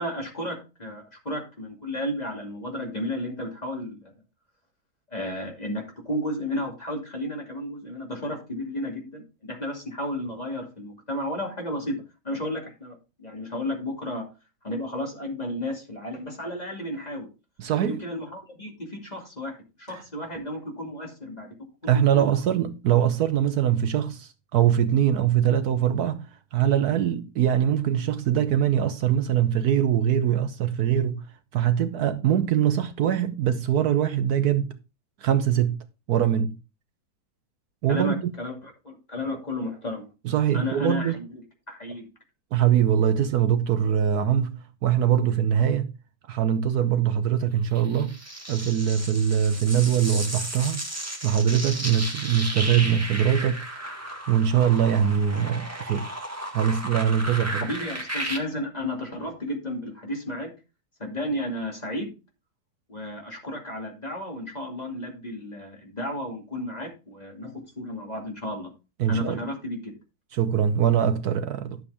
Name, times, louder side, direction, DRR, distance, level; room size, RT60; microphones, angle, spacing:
voice 1, 0.0-4.1 5.1-9.2 9.5-12.0 12.2-14.3 14.6-17.3 17.9-21.5 21.8-22.3 37.9-40.1 40.5-41.4 41.7-42.1 57.6-60.5 61.0-62.1 62.9-68.7 69.1-70.0, left 1 dB, 25° left, 2.6 m, -33 dB
voice 2, 17.6-18.0 19.9-20.0 21.9-31.3 31.5-34.8 35.2-35.8 36.1-36.6 37.8-38.3 40.2-41.2 42.5-45.9 46.3-48.2 48.5-50.8 51.2-53.7 54.3-56.2 56.5-57.7 69.0-69.4 70.3-71.8, right 9 dB, 70° right, 1.2 m, -23 dB
sound 1, 47.8-58.4, right 1 dB, 10° right, 1.6 m, -34 dB
11.0 x 7.0 x 3.4 m
omnidirectional pair, 1.8 m